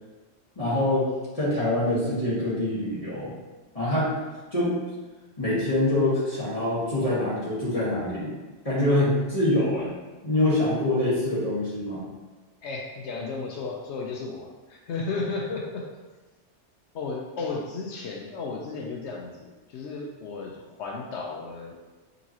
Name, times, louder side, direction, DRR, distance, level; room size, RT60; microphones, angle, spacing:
voice 1, 0.5-1.1 1.3-3.3 3.7-4.1 4.5-4.8 5.4-8.3 8.6-9.9 10.2-12.1, left 1 dB, 30° left, -9 dB, 1.5 m, -25 dB
voice 2, 12.6-15.8 16.9-21.8, left 4 dB, 75° left, 0 dB, 0.9 m, -34 dB
5.2 x 3.0 x 2.8 m, 1.2 s
omnidirectional pair, 1.2 m